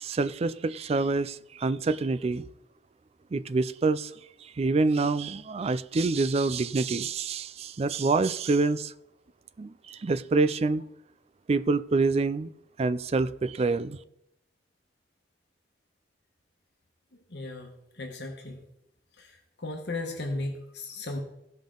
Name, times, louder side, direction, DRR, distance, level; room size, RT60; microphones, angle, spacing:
voice 1, 0.0-1.4 1.6-2.4 3.3-4.1 4.6-8.9 9.6-9.7 10.0-10.8 11.5-12.5 12.8-14.0, right 3 dB, 35° right, 14 dB, 0.4 m, -26 dB
voice 2, 17.3-18.6 19.2-21.2, left 2 dB, 65° left, 2 dB, 1.3 m, -36 dB
16.0 x 5.4 x 3.8 m, 0.82 s
head